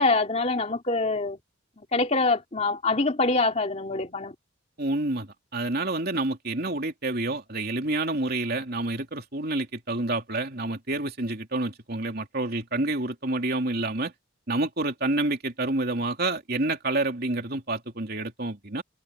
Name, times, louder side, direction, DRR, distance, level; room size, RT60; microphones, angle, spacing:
voice 1, 0.0-1.4 1.9-4.3, left 3 dB, 30° left, 2.7 m, -24 dB
voice 2, 4.8-14.1 14.5-18.8, right 2 dB, 50° right, 3.1 m, -28 dB
head